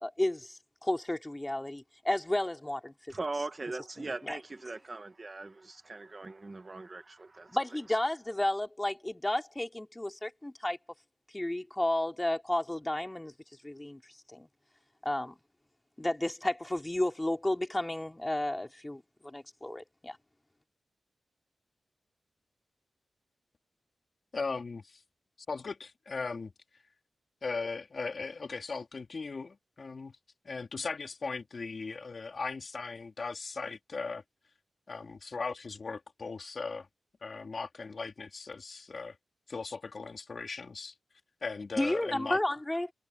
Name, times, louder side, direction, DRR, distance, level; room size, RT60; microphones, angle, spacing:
voice 1, 0.0-2.9 4.0-4.4 7.5-10.8 11.3-13.3 13.6-14.5 15.0-15.3 16.0-20.2 41.7-42.9, left 1 dB, 15° left, 3.1 m, -32 dB
voice 2, 3.1-7.6, right 3 dB, 30° right, 1.4 m, -40 dB
voice 3, 24.3-25.0 25.5-26.5 27.4-30.2 30.4-34.2 34.9-36.9 37.2-39.2 39.5-40.9 41.4-42.4, left 4 dB, 45° left, 3.1 m, -38 dB
wide cardioid pair, 100°, 0 cm